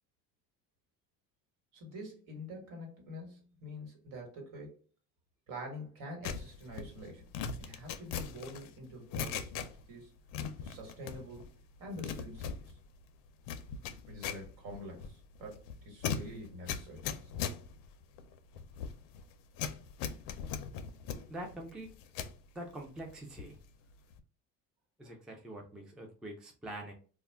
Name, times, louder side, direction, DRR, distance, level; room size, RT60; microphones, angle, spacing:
voice 1, 1.7-4.8 5.5-7.2 7.6-10.1 10.6-11.5 11.8-12.7 14.1-17.3, equal, 70° right, 1 dB, 1.4 m, -46 dB
sound 1, 6.2-10.0 10.3-11.5 11.8-22.4 22.8-23.6 23.9-24.2, left 7 dB, 75° left, 0.5 m, -40 dB
voice 2, 21.3-21.9 22.5-23.6 25.0-26.9, right 1 dB, ahead, 1 dB, 0.3 m, -44 dB
2.3 x 2.1 x 3.3 m, 0.39 s
cardioid pair, 135°, 33 cm